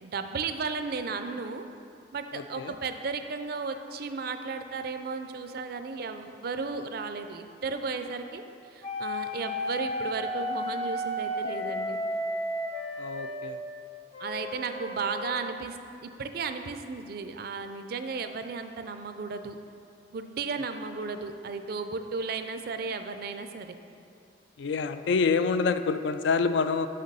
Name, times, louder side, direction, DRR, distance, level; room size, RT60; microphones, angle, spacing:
voice 1, 0.0-1.6 2.1-8.4 8.7-12.0 14.2-19.6 20.1-23.7, right 4 dB, 55° right, 8 dB, 0.4 m, -34 dB
sound 1, 8.8-13.5 14.1-15.5, equal, 30° left, 0.7 m, -33 dB
voice 2, 13.0-13.6 24.6-26.9, left 4 dB, 75° left, 10 dB, 0.3 m, -26 dB
6.5 x 5.3 x 5.4 m, 2.5 s
head